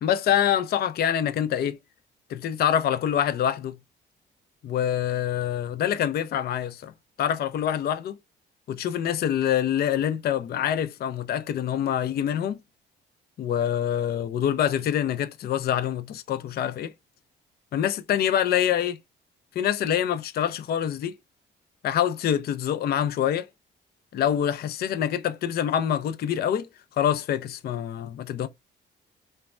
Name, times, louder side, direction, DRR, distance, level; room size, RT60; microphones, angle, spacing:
voice 1, 0.0-1.8 2.3-3.8 4.6-6.9 7.2-8.2 8.7-12.6 13.4-16.9 17.7-19.0 19.6-21.1 21.8-23.5 24.1-26.7 27.0-28.5, left 10 dB, 55° left, 0.4 m, -25 dB
3.1 x 2.1 x 2.3 m
cardioid pair, 90°, 20 cm